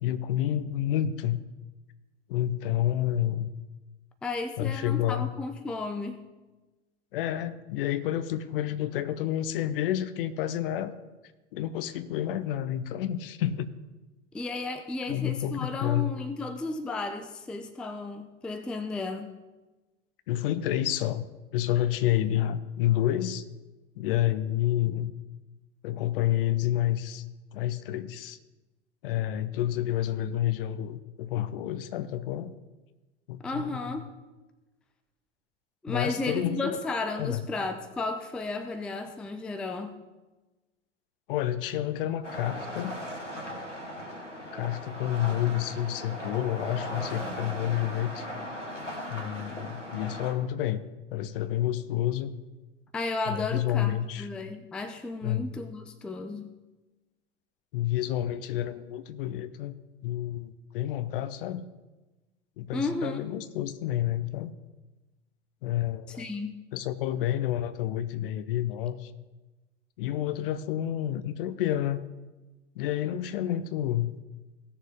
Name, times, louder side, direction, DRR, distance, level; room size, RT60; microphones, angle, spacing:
voice 1, 0.0-1.4 2.3-3.5 4.6-5.3 7.1-10.9 11.5-13.7 15.1-16.1 20.3-21.3 21.5-23.4 24.0-25.1 25.8-27.2 27.5-28.4 29.0-32.5 33.3-33.9 35.9-36.8 37.2-37.5 41.3-43.0 44.5-48.3 49.1-50.8 51.1-52.3 53.3-54.3 55.2-55.6 57.7-59.7 60.0-61.6 62.6-64.5 65.6-66.3 66.7-69.1 70.0-72.0 72.7-74.2, left 12 dB, 50° left, 13 dB, 0.7 m, -29 dB
voice 2, 4.2-6.2 14.3-19.4 33.4-34.0 35.8-40.0 52.9-56.5 62.7-63.2 66.2-66.6, left 3 dB, 5° left, 9 dB, 0.4 m, -33 dB
sound 1, 42.2-50.3, equal, 90° left, 1.6 m, -38 dB
17.0 x 6.7 x 3.5 m, 1.1 s
figure-of-eight pair, 85°, 35 cm